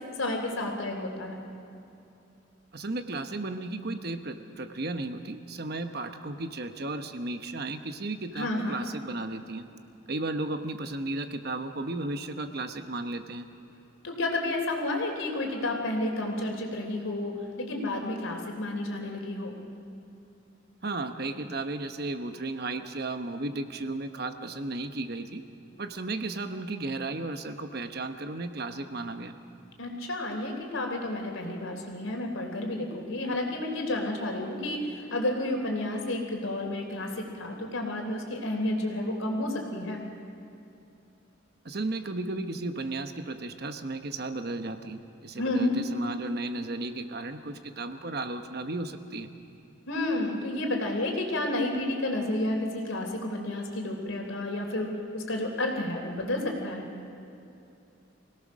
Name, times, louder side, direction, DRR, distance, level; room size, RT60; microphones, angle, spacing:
voice 1, 0.2-1.4 8.3-8.8 14.0-19.6 29.8-40.0 45.4-45.7 49.9-56.8, left 1 dB, 85° left, 2 dB, 3.3 m, -31 dB
voice 2, 2.7-9.6 10.1-13.5 20.8-25.4 25.8-29.3 41.6-49.3, right 2 dB, 50° right, 8 dB, 1.0 m, -34 dB
25.0 x 17.5 x 6.3 m, 2.7 s
head